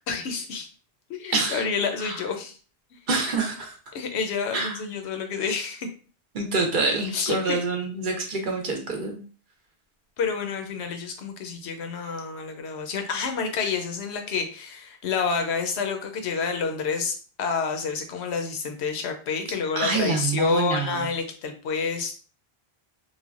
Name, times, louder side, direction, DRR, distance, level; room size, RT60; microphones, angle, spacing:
voice 1, 0.1-0.7 1.1-2.6 2.9-3.0 3.9-5.9 7.1-7.6 10.2-22.1, left 5 dB, 85° left, 5 dB, 0.9 m, -29 dB
voice 2, 1.3-1.6 2.0-2.2 3.1-3.8 4.5-4.8 6.3-9.2 19.8-21.0, right 3 dB, 55° right, 2 dB, 0.7 m, -26 dB
3.2 x 2.1 x 2.4 m, 0.39 s
omnidirectional pair, 1.1 m